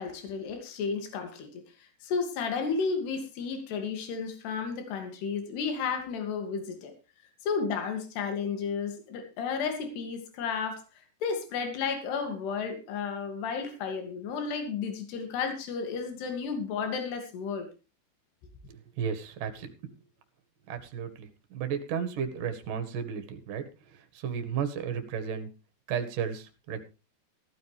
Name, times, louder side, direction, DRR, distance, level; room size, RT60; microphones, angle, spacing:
voice 1, 0.0-1.6 2.0-6.9 7.4-10.8 11.2-17.7, left 5 dB, 70° left, 5 dB, 4.5 m, -32 dB
voice 2, 19.0-19.7 20.7-23.6 24.1-25.5 25.9-26.8, right 7 dB, 55° right, 7 dB, 2.9 m, -33 dB
15.5 x 13.5 x 3.4 m, 0.31 s
omnidirectional pair, 5.1 m